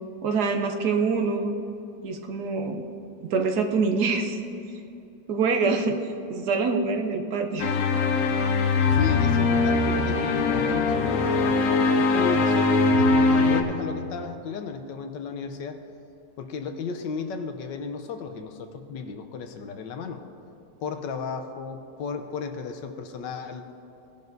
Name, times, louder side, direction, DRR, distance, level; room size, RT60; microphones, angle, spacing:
voice 1, 0.2-1.5 2.0-2.8 3.2-4.4 5.3-7.7 8.4-8.5, right 4 dB, 65° right, 4 dB, 1.2 m, -25 dB
sound 1, 7.6-13.6, left 3 dB, 60° left, 1.0 m, -21 dB
voice 2, 8.9-15.8 16.4-20.2 20.8-23.7, left 5 dB, 75° left, 6 dB, 1.4 m, -34 dB
18.5 x 10.5 x 2.6 m, 2.7 s
omnidirectional pair, 2.0 m